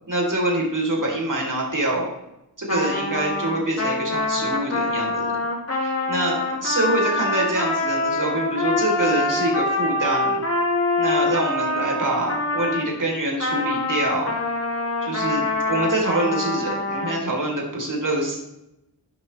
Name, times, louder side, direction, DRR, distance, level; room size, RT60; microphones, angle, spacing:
voice 1, 0.1-2.1 2.6-5.3 5.8-10.4 11.0-14.3 15.0-18.4, right 1 dB, 55° right, -1 dB, 3.9 m, -25 dB
Trumpet, 2.7-12.9 13.4-17.2, left 2 dB, 40° left, 2.8 m, -25 dB
11.5 x 11.0 x 3.4 m, 0.88 s
wide cardioid pair, 70°, 38 cm